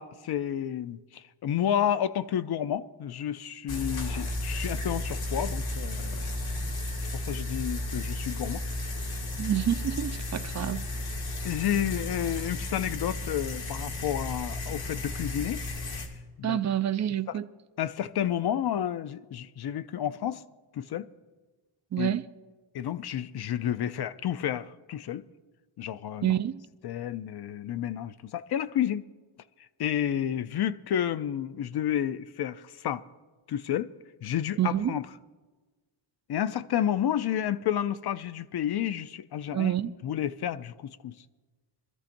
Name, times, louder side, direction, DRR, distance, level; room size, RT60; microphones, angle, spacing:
voice 1, 0.0-6.3 7.1-8.6 11.4-15.6 15.9-16.0 16.4-16.6 17.8-20.4 20.7-21.0 22.0-22.1 22.7-25.2 25.8-26.3 26.8-29.0 29.8-33.0 33.5-33.9 34.2-35.0 36.3-39.7 40.0-41.1, left 10 dB, 50° left, 0.5 m, -30 dB
sound 1, 3.7-16.1, left 1 dB, 75° left, 2.4 m, -33 dB
voice 2, 9.4-10.9 16.4-17.5 21.9-22.3 26.2-26.6 34.6-35.0 39.5-39.9, right 11 dB, 40° right, 0.4 m, -28 dB
25.0 x 13.0 x 2.6 m
wide cardioid pair, 170°, 50 cm